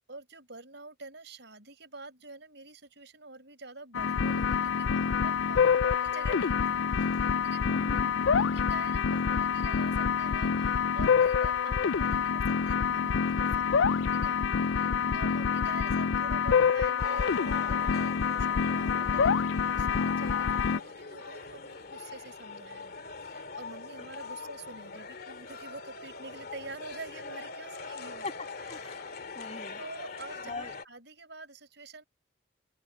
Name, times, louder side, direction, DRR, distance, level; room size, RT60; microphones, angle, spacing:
voice 1, 0.1-8.0 8.3-28.3 28.7-28.8 29.8-32.0, right 3 dB, 60° right, 7.4 m, -47 dB
sound 1, 3.9-20.8, left 6 dB, 70° left, 0.4 m, -27 dB
voice 2, 7.7-8.3 14.8-15.4 28.2-28.3 28.7-29.8 30.4-30.8, left 2 dB, 30° left, 7.3 m, -41 dB
sound 2, 17.0-30.9, left 4 dB, 50° left, 2.4 m, -42 dB
open air
head